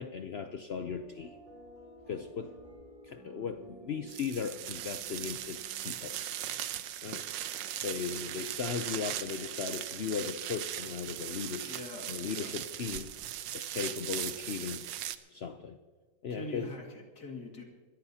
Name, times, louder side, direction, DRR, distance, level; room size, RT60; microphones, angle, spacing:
voice 1, 0.0-1.4 2.1-2.5 3.0-6.2 7.0-7.2 7.8-11.7 12.1-13.1 13.5-14.8 15.3-15.8 16.2-16.7, left 6 dB, 80° left, 7 dB, 0.5 m, -37 dB
sound 1, 0.8-6.2, right 1 dB, 25° right, 5.6 m, -54 dB
sound 2, 4.1-15.2, right 12 dB, 85° right, 1.4 m, -39 dB
voice 2, 11.6-12.6 16.3-17.6, left 2 dB, 60° left, 1 dB, 2.7 m, -43 dB
27.0 x 14.0 x 2.8 m, 1.4 s
omnidirectional pair, 1.9 m